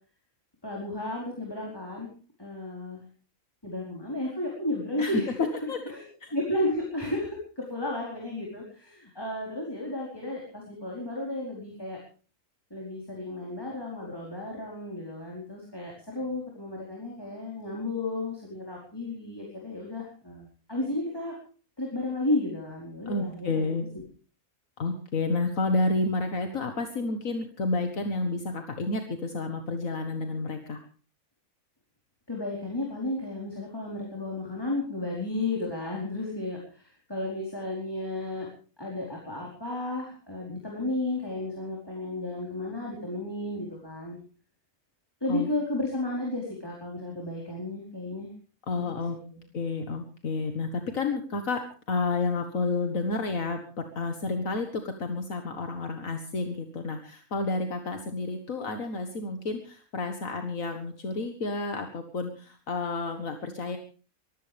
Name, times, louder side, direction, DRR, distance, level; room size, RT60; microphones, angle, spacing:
voice 1, 0.6-2.1 2.4-3.0 3.6-6.0 6.3-12.0 12.7-21.4 21.8-23.7 32.3-38.5 38.8-44.2 45.2-48.3 48.8-49.4, left 2 dB, 15° left, -3 dB, 4.6 m, -33 dB
voice 2, 5.0-5.8 6.2-6.3 23.1-23.9 24.8-30.8 45.3-45.5 48.7-49.2 49.5-51.6 51.9-63.8, left 3 dB, 70° left, 6 dB, 2.0 m, -30 dB
24.0 x 15.5 x 3.5 m, 0.39 s
omnidirectional pair, 1.5 m